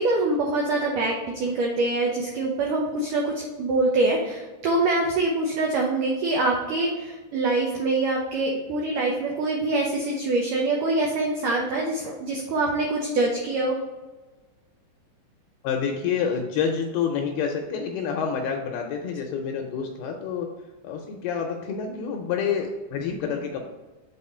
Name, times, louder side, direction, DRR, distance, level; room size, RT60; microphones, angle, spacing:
voice 1, 0.0-13.7, right 2 dB, 90° right, -1 dB, 1.8 m, -24 dB
voice 2, 15.6-20.5 20.8-23.7, left 6 dB, 80° left, 2 dB, 2.4 m, -28 dB
8.0 x 4.2 x 4.3 m, 1.3 s
omnidirectional pair, 5.0 m